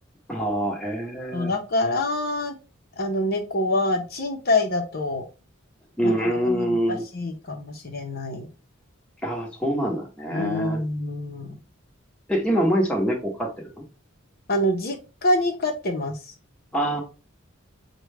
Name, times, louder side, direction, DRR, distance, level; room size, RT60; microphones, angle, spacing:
voice 1, 0.3-1.5 6.0-7.0 9.2-10.8 12.3-13.7 16.7-17.0, equal, 5° left, -1 dB, 0.9 m, -25 dB
voice 2, 1.3-2.6 3.0-5.2 6.0-8.5 10.3-11.6 14.5-16.2, left 1 dB, 50° left, 3 dB, 0.7 m, -26 dB
6.0 x 2.2 x 3.2 m, 0.32 s
head